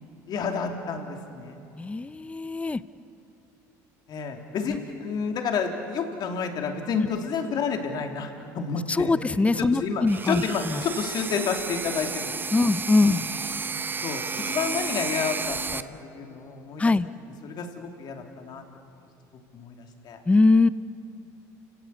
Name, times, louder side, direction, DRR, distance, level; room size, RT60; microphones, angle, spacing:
voice 1, 0.3-1.6 4.1-9.1 9.7-12.3 13.0-13.2 14.0-16.9 17.4-18.6 19.5-20.2, left 5 dB, 55° left, 4 dB, 3.1 m, -30 dB
voice 2, 1.8-2.8 8.9-10.8 12.5-13.2 16.8-17.1 20.3-20.7, left 3 dB, 15° left, 16 dB, 0.7 m, -22 dB
sound 1, 10.1-15.8, right 4 dB, 25° right, 0.8 m, -32 dB
29.0 x 17.0 x 8.3 m, 2.8 s
supercardioid pair, 90°, 9 cm